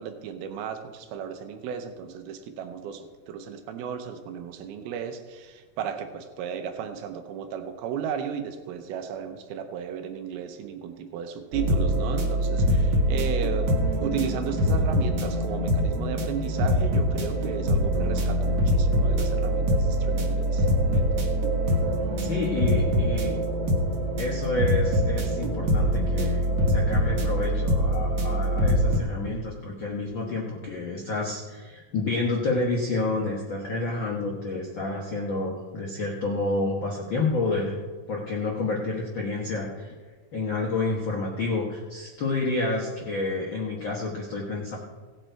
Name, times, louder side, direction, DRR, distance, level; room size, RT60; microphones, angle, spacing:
voice 1, 0.0-13.7 14.0-21.1, right 8 dB, 90° right, 7 dB, 2.8 m, -35 dB
sound 1, 11.5-29.0, equal, 75° right, 1.1 m, -24 dB
voice 2, 22.2-23.4 24.2-37.8 38.1-39.9 40.3-44.8, left 3 dB, 65° left, -2 dB, 1.2 m, -29 dB
17.5 x 7.4 x 4.5 m, 1.4 s
omnidirectional pair, 4.3 m